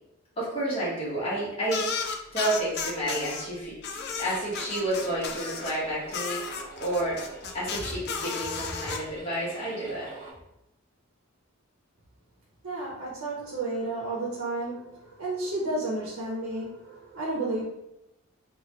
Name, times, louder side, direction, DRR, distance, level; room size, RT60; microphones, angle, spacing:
voice 1, 0.4-1.9 2.3-3.7 4.2-6.4 6.8-7.2 7.5-10.1, right 1 dB, 25° left, -8 dB, 1.2 m, -30 dB
sound 1, 1.7-3.4 3.8-5.7 6.1-9.0, left 5 dB, 50° left, 0.3 m, -34 dB
sound 2, 3.9-10.3, right 2 dB, 40° right, 1.2 m, -47 dB
voice 2, 12.6-17.6, right 2 dB, 85° right, -4 dB, 0.7 m, -32 dB
2.9 x 2.4 x 2.9 m, 0.88 s
head